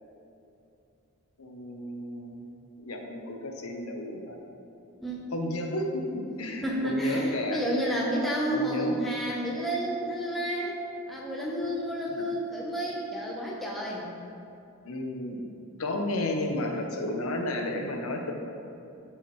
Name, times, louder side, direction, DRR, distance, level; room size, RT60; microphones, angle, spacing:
voice 1, 1.4-2.4 2.8-4.4 5.3-7.6 8.5-8.9 12.1-12.2 14.8-15.5 15.8-18.4, left 1 dB, 80° left, 2 dB, 0.8 m, -32 dB
voice 2, 6.6-10.8 11.1-14.1, equal, ahead, -5 dB, 0.7 m, -30 dB
10.5 x 4.8 x 3.1 m, 2.7 s
head